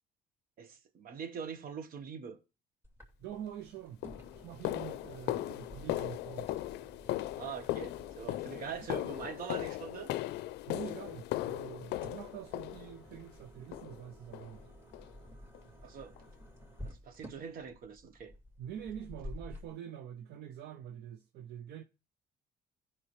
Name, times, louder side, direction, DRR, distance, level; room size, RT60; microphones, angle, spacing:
voice 1, 0.6-2.4 7.4-10.1 15.8-16.1 16.8-18.3, right 7 dB, 60° right, 1.3 m, -43 dB
sound 1, 2.8-19.7, left 1 dB, 15° right, 2.5 m, -52 dB
voice 2, 3.2-4.0 4.4-6.5 10.6-14.7 18.6-21.8, right 10 dB, 75° right, 0.6 m, -45 dB
sound 2, 3.3-3.5 4.0-13.2 13.7-14.1 14.3-14.5 14.9-15.1 15.5-15.6 16.2-16.3, left 15 dB, 80° left, 0.5 m, -38 dB
16.0 x 5.9 x 3.2 m
cardioid pair, 110°, 17 cm